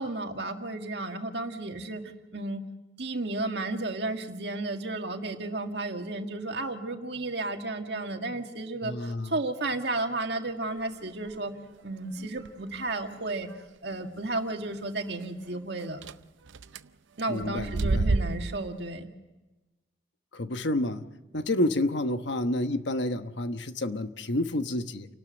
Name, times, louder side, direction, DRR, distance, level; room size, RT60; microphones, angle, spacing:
voice 1, 0.0-2.6 3.0-11.5 11.8-13.5 13.8-16.0 17.2-19.1, right 2 dB, 65° right, 4 dB, 1.9 m, -33 dB
voice 2, 8.8-9.3 17.3-18.1 20.3-21.1 21.3-25.1, left 1 dB, 75° left, 9 dB, 1.1 m, -29 dB
sound 1, 12.2-12.5 13.1-13.2 13.5-13.6 13.9-14.0 16.0-16.1 16.5-16.8 17.4-18.8, right 3 dB, 90° right, 0.6 m, -28 dB
29.5 x 12.5 x 7.8 m, 1.1 s
head